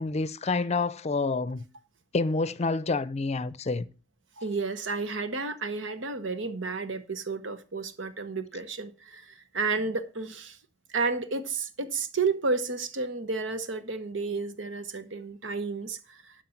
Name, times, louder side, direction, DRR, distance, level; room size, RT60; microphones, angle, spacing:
voice 1, 0.0-1.6 2.1-3.9, left 3 dB, 35° left, 0.5 m, -28 dB
voice 2, 4.4-10.6 10.9-16.3, right 4 dB, 90° right, 1.1 m, -31 dB
12.0 x 5.1 x 5.8 m
head